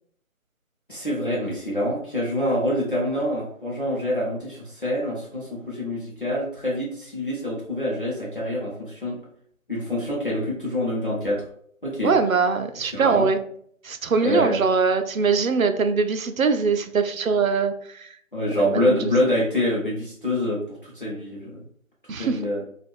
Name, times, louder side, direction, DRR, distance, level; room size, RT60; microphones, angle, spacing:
voice 1, 0.9-9.2 9.7-11.4 11.8-12.1 12.9-13.3 14.2-14.6 18.3-21.6 22.1-22.6, left 1 dB, 40° left, -6 dB, 0.7 m, -26 dB
voice 2, 12.0-13.4 13.8-18.1 18.7-19.1 22.1-22.4, right 5 dB, 75° right, 8 dB, 0.5 m, -22 dB
2.4 x 2.3 x 3.5 m, 0.62 s
figure-of-eight pair, 165°, 42 cm